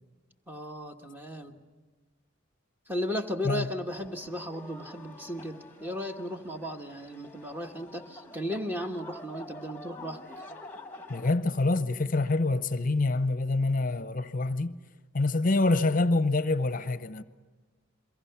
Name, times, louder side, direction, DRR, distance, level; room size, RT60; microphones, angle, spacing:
voice 1, 0.5-1.6 2.9-10.2, equal, 10° right, 1.2 m, -35 dB
sound 1, 3.9-11.3, left 2 dB, 10° left, 1.5 m, -48 dB
voice 2, 11.1-14.8 15.1-17.2, left 2 dB, 40° left, 0.8 m, -26 dB
28.0 x 23.0 x 5.8 m
head